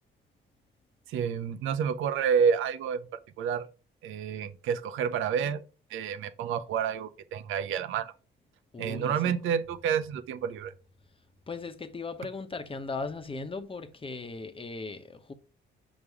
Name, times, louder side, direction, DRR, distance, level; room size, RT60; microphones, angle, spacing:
voice 1, 1.1-3.0 3.4-3.7 4.0-5.6 5.9-8.1 8.8-10.7, right 7 dB, 85° right, 0.7 m, -29 dB
voice 2, 8.7-9.3 11.5-15.3, left 4 dB, 25° left, 1.0 m, -38 dB
5.4 x 5.2 x 4.8 m
cardioid pair, 90°, 20 cm